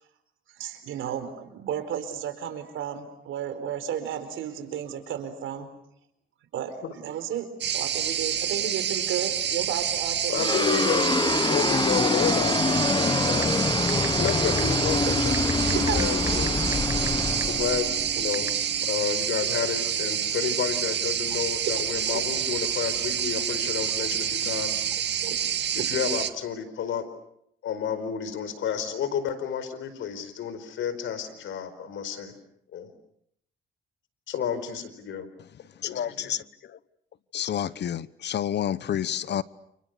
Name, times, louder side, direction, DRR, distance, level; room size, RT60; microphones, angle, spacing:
voice 1, 0.5-5.7 6.5-10.7 11.0-11.5 13.2-13.3 15.7-16.5 19.9-20.1 20.5-20.6 21.4-22.2 25.2-25.4, right 9 dB, 80° right, 4.6 m, -34 dB
sound 1, 7.6-26.3, right 9 dB, 60° right, 2.0 m, -28 dB
voice 2, 10.3-11.1 11.5-13.6 14.2-16.6 17.5-17.9 18.2-18.6 18.8-24.7 25.7-27.0 27.6-32.3 32.7-32.9 34.3-35.3 35.8-36.3, left 8 dB, 75° left, 4.7 m, -31 dB
sound 2, 10.3-18.9, left 3 dB, 25° left, 1.1 m, -26 dB
sound 3, 13.4-13.5 13.9-14.3 14.6-14.7 15.3-17.1 17.4-17.5 18.3-18.5, right 2 dB, 15° right, 1.5 m, -32 dB
voice 3, 35.8-36.8 37.3-39.4, left 10 dB, 60° left, 1.1 m, -29 dB
30.0 x 29.5 x 6.8 m
cardioid pair, 90°, 20 cm